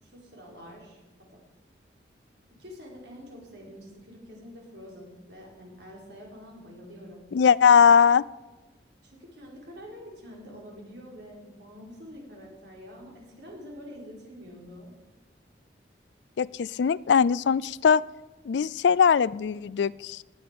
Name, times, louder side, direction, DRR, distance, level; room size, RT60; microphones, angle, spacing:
voice 1, 0.0-1.0 1.3-1.4 2.5-7.2 9.0-14.9, equal, 80° right, -2 dB, 4.6 m, -46 dB
voice 2, 7.3-8.2 16.4-18.0 18.5-20.2, left 6 dB, 80° left, 21 dB, 0.4 m, -20 dB
18.5 x 9.5 x 5.2 m, 1.2 s
head